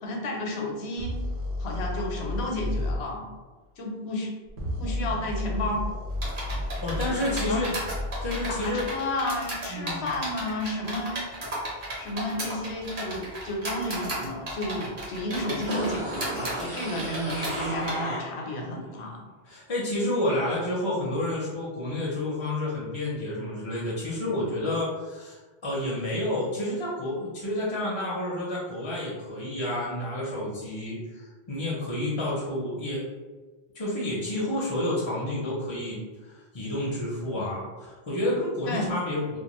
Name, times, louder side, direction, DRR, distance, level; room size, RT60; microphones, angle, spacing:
voice 1, 0.0-1.2 1.6-3.2 3.8-4.3 4.8-5.8 7.0-7.1 7.5-7.8 8.5-11.3 11.9-19.2 38.7-38.9, left 1 dB, 85° left, 0 dB, 0.9 m, -32 dB
sound 1, 1.0-3.0 4.5-8.8, left 1 dB, 80° right, 0.9 m, -32 dB
sound 2, 6.2-17.9, right 1 dB, 55° right, 1.0 m, -35 dB
voice 2, 6.8-7.8 8.2-8.8 9.7-10.1 16.5-16.8 19.4-33.0 33.7-39.4, left 1 dB, 40° left, -5 dB, 0.4 m, -30 dB
sound 3, 15.7-18.7 19.0-19.1, right 1 dB, 40° right, 0.5 m, -34 dB
2.4 x 2.3 x 3.0 m, 1.3 s
omnidirectional pair, 1.1 m